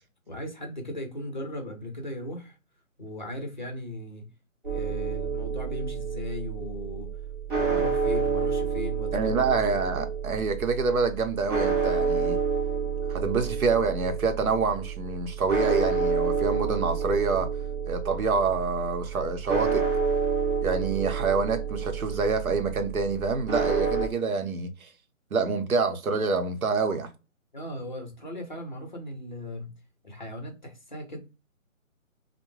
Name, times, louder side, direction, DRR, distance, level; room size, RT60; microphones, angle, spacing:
voice 1, 0.3-2.6 3.0-4.3 4.7-7.2 7.5-9.4 27.5-29.7 30.0-31.2, left 1 dB, 35° left, 0.6 m, -37 dB
sound 1, 4.6-24.1, right 5 dB, 40° right, 0.7 m, -29 dB
voice 2, 9.1-12.4 13.1-17.5 17.9-19.8 20.6-24.9 25.3-27.1, right 4 dB, 85° right, 0.8 m, -27 dB
2.3 x 2.1 x 3.0 m
hypercardioid pair, 175°, 41 cm